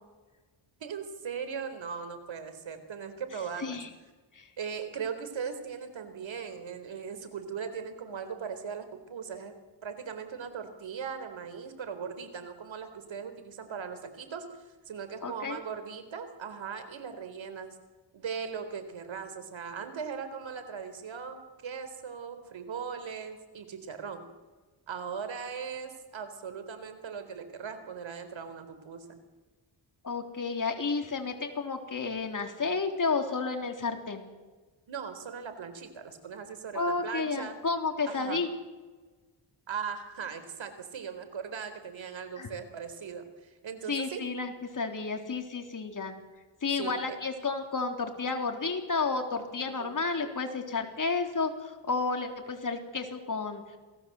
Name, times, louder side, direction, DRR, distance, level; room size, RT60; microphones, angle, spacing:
voice 1, 0.8-3.8 4.6-9.5 9.8-14.5 14.9-17.8 18.1-24.3 24.9-29.2 34.9-37.5 38.1-38.4 39.7-44.2 46.8-46.9 49.8-49.9, right 6 dB, 70° right, 9 dB, 4.0 m, -39 dB
voice 2, 3.3-3.9 4.3-4.6 15.2-15.6 30.0-34.2 36.7-38.5 42.4-42.5 43.9-53.8, left 4 dB, 40° left, 4 dB, 3.8 m, -32 dB
28.0 x 18.0 x 7.9 m, 1.3 s
cardioid pair, 95°, 48 cm